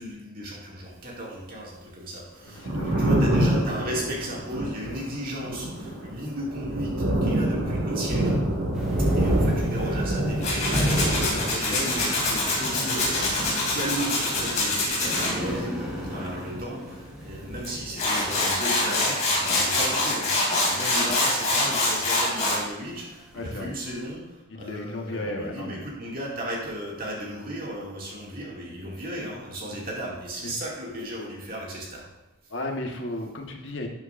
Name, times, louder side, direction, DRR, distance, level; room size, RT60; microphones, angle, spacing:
voice 1, 0.0-8.4 9.0-32.1 32.4-32.5, equal, 45° right, -3 dB, 2.2 m, -35 dB
Thunder, 2.4-16.9 17.1-18.4, right 1 dB, 90° right, 2.0 m, -27 dB
voice 2, 2.5-3.2 11.3-12.1 23.3-23.7 24.5-25.9 29.7-29.8 30.4-30.5 32.5-33.9, left 1 dB, 60° left, 2 dB, 1.2 m, -34 dB
sound 1, 8.7-24.1, equal, 5° right, 2.1 m, -43 dB
Tools, 10.4-15.3 17.6-17.7 18.0-22.6, left 2 dB, 35° left, 2.7 m, -25 dB
12.0 x 7.1 x 2.5 m, 1.1 s
head